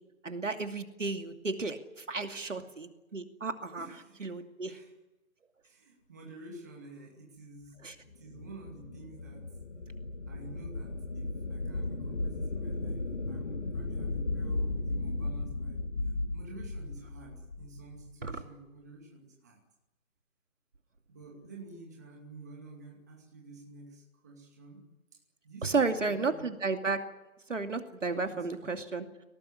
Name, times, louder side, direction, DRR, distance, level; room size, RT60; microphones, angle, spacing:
voice 1, 0.2-3.9 4.2-4.8 7.8-7.9 18.2-18.4 25.6-27.0 27.5-29.0, right 4 dB, 60° right, 6 dB, 2.6 m, -33 dB
voice 2, 3.8-4.9 5.6-7.8 8.1-9.6 10.3-19.6 21.1-24.8 25.1-26.5 28.2-28.8, right 2 dB, 10° right, -1 dB, 2.4 m, -50 dB
sound 1, 8.0-18.1, left 2 dB, 35° left, 2.5 m, -36 dB
25.5 x 18.0 x 9.9 m, 1.0 s
figure-of-eight pair, 180°, 42 cm